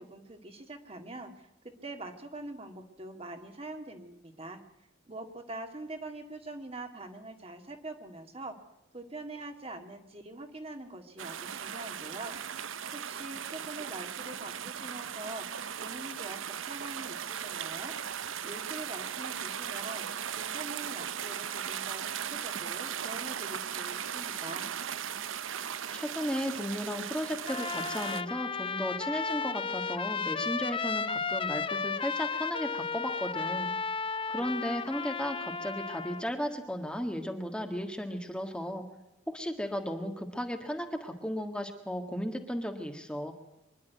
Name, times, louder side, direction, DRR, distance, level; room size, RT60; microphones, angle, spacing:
voice 1, 0.0-4.6 5.1-8.6 8.9-12.4 12.9-15.5 15.7-18.0 18.4-20.1 20.3-24.7, right 2 dB, 30° right, 5 dB, 2.0 m, -44 dB
sound 1, 11.2-28.2, right 8 dB, 80° right, 0.8 m, -38 dB
voice 2, 25.9-33.7 34.3-38.8 39.3-43.3, equal, 5° left, 4 dB, 1.6 m, -35 dB
Trumpet, 27.5-36.2, left 5 dB, 25° left, 0.7 m, -34 dB
25.0 x 11.5 x 9.3 m, 0.88 s
head